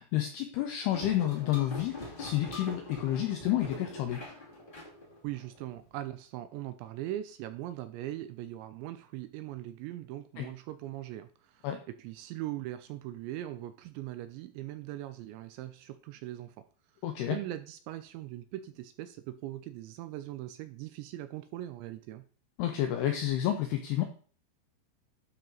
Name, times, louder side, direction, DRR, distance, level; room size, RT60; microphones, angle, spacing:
voice 1, 0.0-4.2 10.4-10.5 11.6-11.8 17.0-17.4 22.6-24.0, left 12 dB, 85° left, 6 dB, 2.3 m, -30 dB
sound 1, 0.9-5.8, left 2 dB, 35° left, 0.8 m, -43 dB
voice 2, 5.2-11.7 12.0-16.7 17.3-22.3, right 14 dB, 85° right, 10 dB, 2.7 m, -40 dB
12.0 x 4.5 x 3.9 m, 0.43 s
omnidirectional pair, 5.5 m